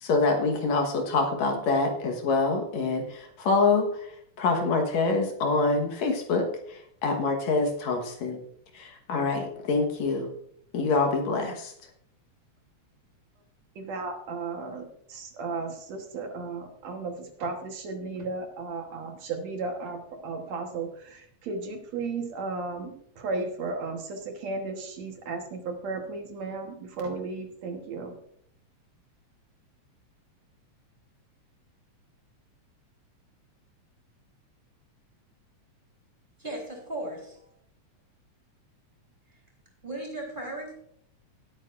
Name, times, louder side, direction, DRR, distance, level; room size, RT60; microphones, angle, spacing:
voice 1, 0.0-3.9 4.4-8.4 8.7-10.3 10.7-11.7, left 3 dB, 70° left, 3 dB, 2.5 m, -26 dB
voice 2, 13.8-14.8 15.1-17.1 17.4-20.9 21.5-28.1, right 3 dB, 70° right, 4 dB, 2.4 m, -34 dB
voice 3, 36.4-37.4 39.8-40.7, right 1 dB, 15° right, -1 dB, 3.7 m, -36 dB
18.5 x 9.0 x 2.5 m, 0.69 s
omnidirectional pair, 3.3 m